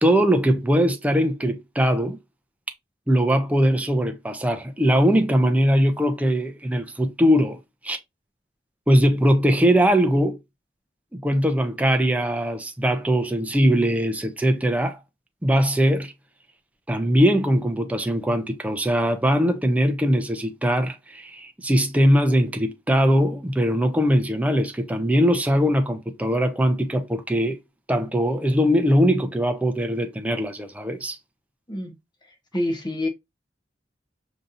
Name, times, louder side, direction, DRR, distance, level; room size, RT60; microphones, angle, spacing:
voice 1, 0.0-2.2 3.1-7.6 7.8-8.0 8.9-10.4 11.1-15.0 15.4-16.1 16.9-27.6 27.9-31.2, equal, 10° right, 0.5 m, -21 dB
voice 2, 32.5-33.1, left 1 dB, 25° left, 0.9 m, -26 dB
5.1 x 2.7 x 2.5 m
head